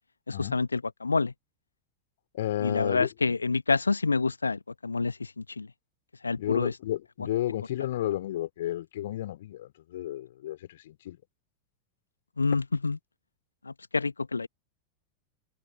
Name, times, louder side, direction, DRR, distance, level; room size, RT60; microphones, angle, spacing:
voice 1, 0.3-1.3 2.6-5.7 6.1-6.8 12.4-13.0 13.6-14.5, left 4 dB, 80° left, 0.9 m, -28 dB
voice 2, 2.3-3.3 6.4-11.2, left 13 dB, 55° left, 3.0 m, -32 dB
figure-of-eight pair, 90°, 0 cm